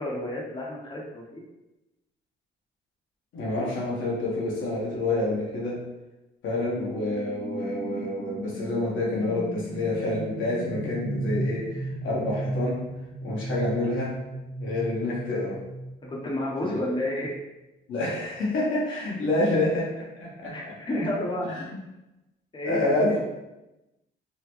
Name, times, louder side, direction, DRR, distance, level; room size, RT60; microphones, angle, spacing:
voice 1, 0.0-1.4 16.0-17.3 20.5-21.6 22.5-23.2, left 1 dB, 25° left, -3 dB, 0.8 m, -31 dB
voice 2, 3.3-5.9 6.4-12.8 13.2-14.2 14.6-15.6 16.6-16.8 17.9-21.0 21.4-21.8 22.6-23.2, left 2 dB, 80° left, -5 dB, 1.1 m, -28 dB
sound 1, 6.7-17.1, right 1 dB, 30° right, 1.4 m, -35 dB
3.8 x 2.1 x 3.0 m, 0.98 s
cardioid pair, 90°, 20 cm